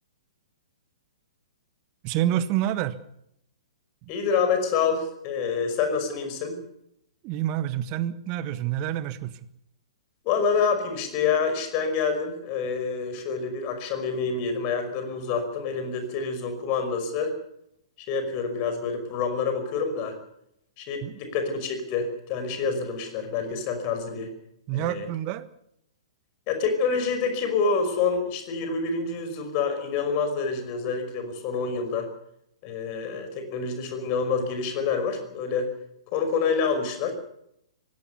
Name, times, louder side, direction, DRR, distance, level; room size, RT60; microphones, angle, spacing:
voice 1, 2.0-3.0 4.0-4.1 7.2-9.3 21.0-21.2 24.7-25.5, right 12 dB, 30° right, 14 dB, 1.3 m, -28 dB
voice 2, 4.1-6.6 10.2-17.3 18.1-20.1 20.8-24.3 24.7-25.1 26.5-32.1 32.6-35.7 36.1-37.1, left 5 dB, 35° left, 7 dB, 5.4 m, -27 dB
24.5 x 17.5 x 6.9 m, 0.76 s
figure-of-eight pair, 115°, 3 cm